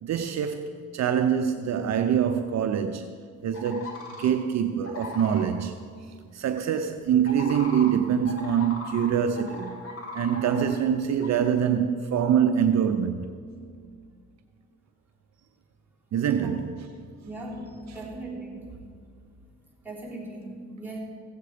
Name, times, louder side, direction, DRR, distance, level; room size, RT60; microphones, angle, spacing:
voice 1, 0.0-3.1 3.4-5.8 6.3-9.8 10.1-13.2 16.1-16.9, right 8 dB, 60° right, 0.7 m, -25 dB
sound 1, 3.5-4.3 4.8-5.5 7.2-9.1 9.3-10.7 11.2-11.3, left 3 dB, 45° left, 3.2 m, -38 dB
voice 2, 17.2-18.8 19.8-21.0, right 2 dB, 5° right, 3.7 m, -38 dB
15.5 x 8.1 x 5.0 m
cardioid pair, 90°, 30 cm